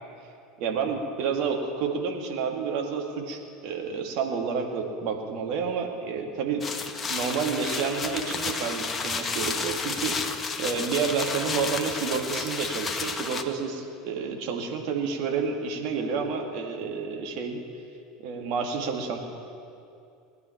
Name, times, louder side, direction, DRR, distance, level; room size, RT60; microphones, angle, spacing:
voice 1, 0.6-10.2 10.6-17.6 18.2-19.2, right 5 dB, 55° right, 2 dB, 2.1 m, -30 dB
sound 1, 6.6-13.4, left 4 dB, 25° left, 1.4 m, -31 dB
20.5 x 10.5 x 5.9 m, 2.5 s
figure-of-eight pair, 75°, 0 cm